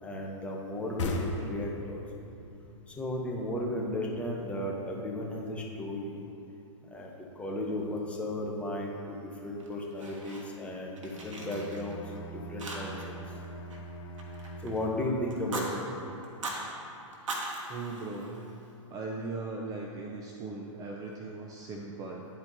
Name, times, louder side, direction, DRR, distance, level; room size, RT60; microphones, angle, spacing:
voice 1, 0.0-2.0 2.9-6.2 6.9-13.3 14.6-15.9, left 1 dB, 5° left, -2 dB, 0.9 m, -35 dB
sound 1, 1.0-4.4, left 2 dB, 65° left, 1.1 m, -37 dB
Fire, 9.6-10.7 11.0-12.2 12.6-13.2 13.4-14.8 15.3-15.7 16.2-16.6 17.1-18.7, right 2 dB, 75° right, 1.4 m, -40 dB
Bowed string instrument, 11.1-15.1, right 2 dB, 40° left, 1.0 m, -44 dB
voice 2, 17.7-18.3 18.9-22.3, right 3 dB, 20° right, -1 dB, 0.5 m, -39 dB
10.5 x 4.4 x 4.1 m, 2.8 s
hypercardioid pair, 125°, 17 cm